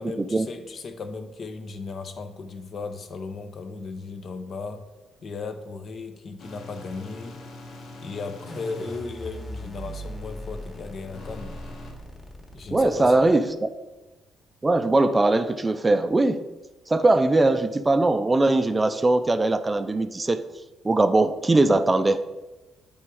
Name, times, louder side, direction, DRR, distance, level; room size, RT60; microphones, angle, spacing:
voice 1, 0.0-4.8 5.2-7.4 8.0-11.6 12.5-13.4, left 4 dB, 50° left, 8 dB, 0.7 m, -36 dB
sound 1, 6.4-11.9, left 2 dB, 75° left, 1.3 m, -45 dB
sound 2, 8.5-13.5, equal, 30° left, 1.2 m, -39 dB
voice 2, 12.7-13.7 14.6-16.4 16.9-20.5 20.8-22.2, right 2 dB, 20° right, 10 dB, 0.4 m, -20 dB
7.3 x 3.5 x 4.6 m, 1.1 s
cardioid pair, 90°, 0 cm